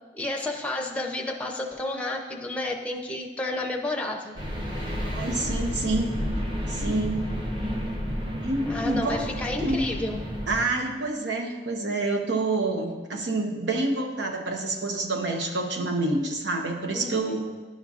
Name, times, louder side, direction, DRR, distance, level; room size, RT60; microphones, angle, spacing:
voice 1, 0.1-4.4 8.7-10.2 16.9-17.4, left 2 dB, 5° left, 1 dB, 0.6 m, -31 dB
sound 1, 4.4-10.6, equal, 25° right, 0.9 m, -31 dB
voice 2, 5.0-6.2 6.7-7.2 8.4-9.2 9.6-9.9 10.5-17.4, right 2 dB, 90° right, 2 dB, 0.9 m, -27 dB
11.0 x 5.6 x 2.5 m, 1.3 s
head